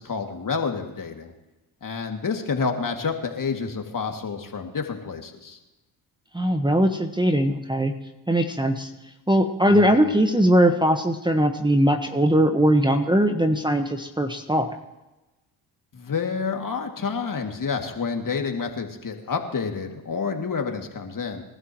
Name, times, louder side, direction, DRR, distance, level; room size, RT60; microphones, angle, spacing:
voice 1, 0.0-1.3 1.8-5.6 9.7-10.1 15.9-21.4, left 5 dB, 40° left, 3 dB, 2.5 m, -29 dB
voice 2, 6.3-7.9 8.3-8.9 9.3-14.7, right 1 dB, 10° right, 6 dB, 1.3 m, -20 dB
28.0 x 12.5 x 3.1 m, 1.0 s
hypercardioid pair, 55°, 50 cm